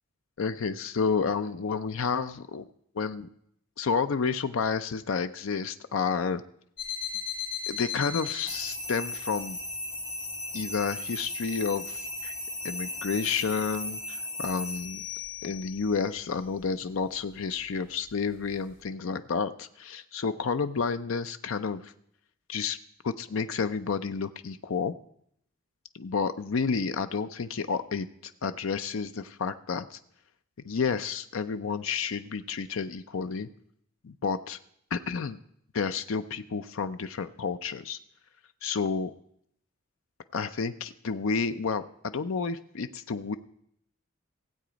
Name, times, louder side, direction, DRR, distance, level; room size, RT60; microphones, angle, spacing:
voice 1, 0.4-2.7 2.9-3.3 3.8-6.4 7.7-9.6 10.5-12.3 12.6-15.0 15.4-21.9 22.5-22.8 23.0-24.9 25.9-30.0 30.6-33.5 34.0-34.6 34.9-35.4 35.7-38.0 38.6-39.1 40.3-43.4, left 5 dB, 75° left, 10 dB, 0.5 m, -30 dB
sound 1, 6.8-18.8, left 3 dB, 45° left, 5.7 m, -37 dB
17.0 x 7.9 x 5.1 m, 0.71 s
head